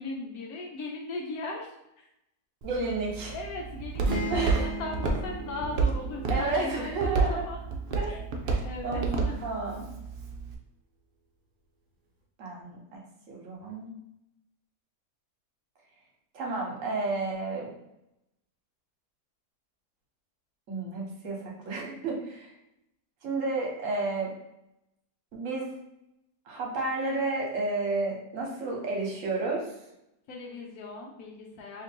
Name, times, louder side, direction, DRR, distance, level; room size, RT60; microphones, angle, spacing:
voice 1, 0.0-1.7 2.0-2.1 3.3-7.6 8.0-8.2 8.5-9.4 30.3-31.8, left 3 dB, 75° left, 0 dB, 1.1 m, -38 dB
voice 2, 2.6-3.3 4.3-4.7 6.3-7.4 8.0-8.1 8.5-9.9 12.4-13.0 13.3-13.9 16.3-17.7 20.7-21.4 21.6-22.5 23.2-24.3 25.3-25.7 26.5-29.7, right 3 dB, 60° right, -1 dB, 1.2 m, -31 dB
Walk footsteps, 2.6-10.5, right 4 dB, 80° right, 0.5 m, -31 dB
sound 1, 4.0-7.8, equal, 45° right, 0.7 m, -38 dB
2.9 x 2.5 x 4.3 m, 0.86 s
omnidirectional pair, 1.6 m